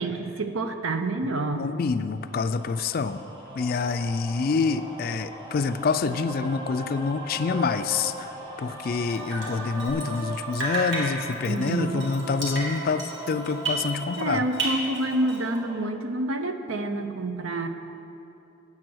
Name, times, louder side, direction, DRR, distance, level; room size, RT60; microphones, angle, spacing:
voice 1, 0.0-1.7 11.4-12.1 14.2-17.7, right 2 dB, 80° right, 7 dB, 0.7 m, -28 dB
voice 2, 1.2-3.2 3.6-8.1 8.6-14.4, left 4 dB, 45° left, 11 dB, 0.3 m, -27 dB
sound 1, 2.3-15.8, right 1 dB, 20° right, 1.7 m, -40 dB
sound 2, 3.2-9.9, left 1 dB, 5° right, 0.6 m, -46 dB
Drip, 9.1-10.3 10.5-14.3 14.5-15.6, right 2 dB, 65° right, 1.9 m, -32 dB
8.9 x 7.5 x 6.2 m, 2.8 s
head